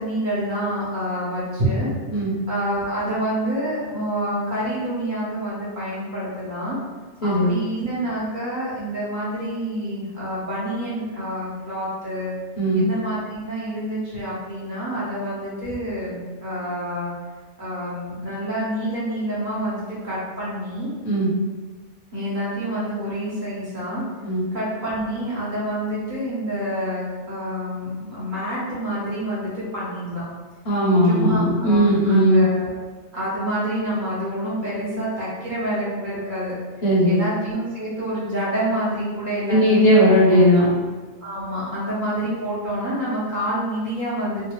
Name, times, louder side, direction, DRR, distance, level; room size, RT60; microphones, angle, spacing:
voice 1, 0.0-1.9 2.5-6.8 7.2-12.3 12.7-17.1 17.6-20.9 22.1-24.0 24.5-30.2 31.1-32.7 33.1-36.5 37.1-40.0 41.2-44.5, equal, 40° right, -10 dB, 1.4 m, -27 dB
voice 2, 7.2-7.5 12.6-12.8 21.0-21.3 24.2-24.4 30.6-32.4 36.8-37.2 39.5-40.7, equal, 60° left, -6 dB, 1.2 m, -17 dB
4.2 x 2.3 x 3.1 m, 1.3 s
omnidirectional pair, 1.3 m